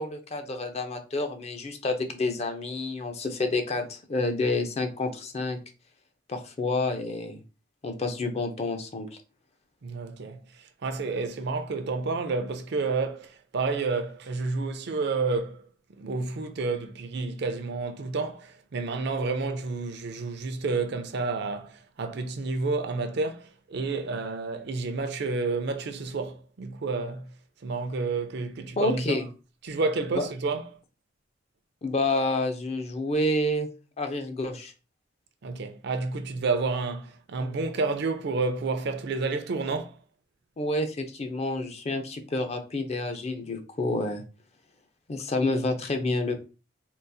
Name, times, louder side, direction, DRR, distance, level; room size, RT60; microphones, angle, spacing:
voice 1, 0.0-5.6 6.3-7.4 7.8-9.1 28.8-29.3 30.1-30.3 31.8-33.7 34.0-34.7 40.6-44.2 45.1-46.4, left 2 dB, 35° left, 0.5 m, -29 dB
voice 2, 9.8-10.4 10.8-15.7 16.0-27.3 27.6-29.2 29.6-30.6 35.4-39.9, right 3 dB, 60° right, 0.5 m, -30 dB
3.8 x 2.3 x 2.6 m
head